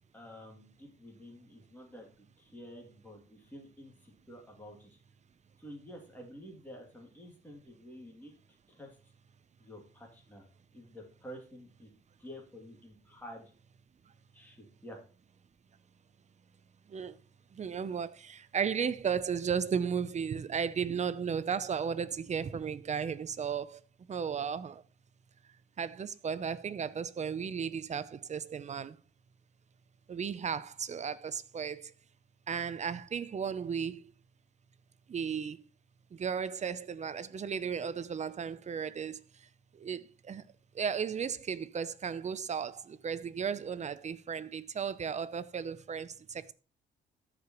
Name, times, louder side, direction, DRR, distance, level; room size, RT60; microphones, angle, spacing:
voice 1, 0.1-5.0 5.6-8.3 8.7-9.0 9.6-10.5 10.7-11.9 12.2-13.5 14.3-15.0, equal, 10° left, 2.6 m, -50 dB
voice 2, 17.5-23.8 24.1-24.8 25.8-29.0 30.1-31.9 32.5-34.0 35.1-35.6 36.1-39.2 39.7-40.4 40.7-46.5, right 7 dB, 35° right, 0.6 m, -35 dB
13.5 x 5.0 x 3.1 m
cardioid pair, 90°, 20 cm